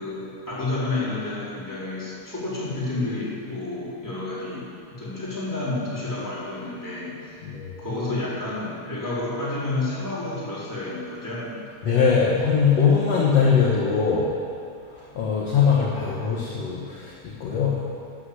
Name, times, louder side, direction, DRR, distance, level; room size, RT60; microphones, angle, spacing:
voice 1, 0.0-4.7 5.0-7.4 7.8-11.7, left 2 dB, 5° left, -9 dB, 4.2 m, -30 dB
voice 2, 7.4-7.7 11.8-14.3 14.9-17.8, left 6 dB, 55° left, -4 dB, 2.3 m, -21 dB
12.5 x 9.7 x 8.2 m, 2.4 s
omnidirectional pair, 3.8 m